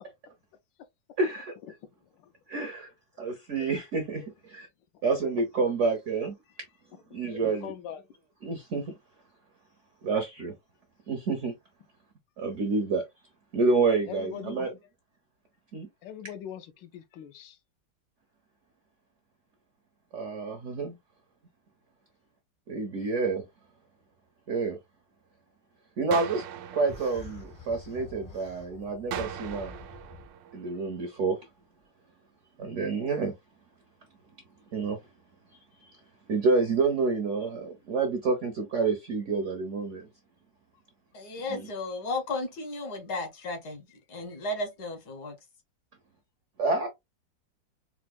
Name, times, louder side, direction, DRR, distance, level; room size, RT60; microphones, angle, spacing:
voice 1, 1.2-1.5 2.5-2.9 3.2-4.7 5.0-6.4 7.1-7.7 8.4-8.9 10.0-10.6 11.1-11.6 12.4-13.0 13.5-14.7 15.7-15.9 20.1-21.0 22.7-23.4 24.5-24.8 26.0-26.4 26.7-29.7 30.5-31.4 32.6-33.3 34.7-35.0 35.7-36.0 36.3-40.1 41.5-41.7 46.6-46.9, right 4 dB, 75° right, 0.7 m, -28 dB
voice 2, 7.2-8.0 14.0-14.6 16.0-17.6, left 9 dB, 85° left, 1.3 m, -42 dB
sound 1, 26.1-28.2 29.1-31.2, right 9 dB, 90° right, 1.3 m, -40 dB
sound 2, 26.9-30.3, left 4 dB, 35° left, 0.6 m, -46 dB
voice 3, 41.1-45.4, left 2 dB, 65° left, 1.4 m, -34 dB
4.4 x 2.1 x 2.3 m
omnidirectional pair, 2.0 m